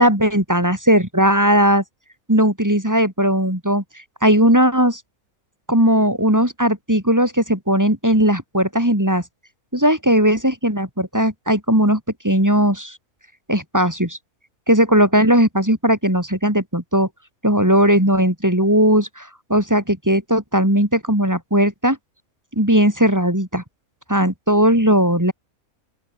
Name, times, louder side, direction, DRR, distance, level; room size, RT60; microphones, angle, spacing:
voice 1, 0.0-1.8 2.3-3.8 4.2-5.0 5.7-9.2 9.7-13.0 13.5-14.2 14.7-17.1 17.4-22.0 22.5-23.6 24.1-25.3, equal, 10° right, 3.9 m, -17 dB
open air
omnidirectional pair, 1.5 m